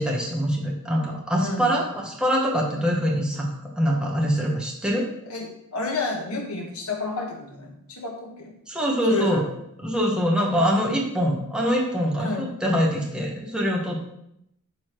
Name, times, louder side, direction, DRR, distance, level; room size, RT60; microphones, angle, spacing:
voice 1, 0.0-3.5 3.8-5.1 8.7-9.4 9.8-14.0, equal, 5° right, -2 dB, 1.7 m, -24 dB
voice 2, 1.4-1.8 5.3-8.5 9.1-9.5 12.2-12.5, left 3 dB, 80° left, 1 dB, 1.6 m, -30 dB
11.5 x 4.2 x 4.7 m, 0.78 s
head